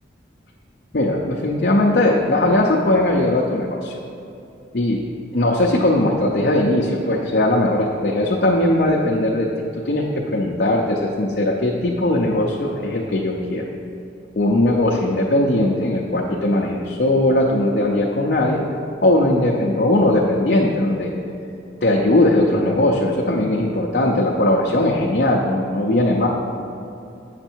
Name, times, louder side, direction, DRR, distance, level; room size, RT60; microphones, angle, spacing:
voice 1, 0.9-3.9 4.7-5.0 5.3-9.5 9.7-13.6 14.4-18.6 19.0-21.1 21.8-26.3, left 1 dB, 55° left, -2 dB, 0.6 m, -19 dB
7.8 x 5.9 x 4.5 m, 2.7 s
head